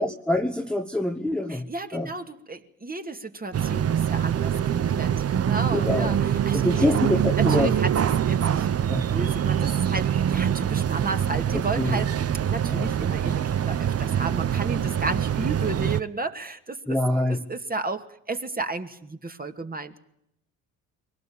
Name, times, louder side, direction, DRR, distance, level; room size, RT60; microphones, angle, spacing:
voice 1, 0.0-2.1 5.7-6.2 6.5-7.7 8.9-9.0 11.8-12.0 12.7-12.9 16.9-17.4, left 1 dB, ahead, 5 dB, 1.5 m, -25 dB
voice 2, 1.5-6.9 7.4-8.7 9.1-12.2 12.5-17.0 17.3-20.0, right 3 dB, 20° right, 7 dB, 2.3 m, -33 dB
sound 1, 3.5-16.0, right 9 dB, 35° right, 0.9 m, -24 dB
23.5 x 18.0 x 8.7 m, 0.77 s
hypercardioid pair, 55°, 40 cm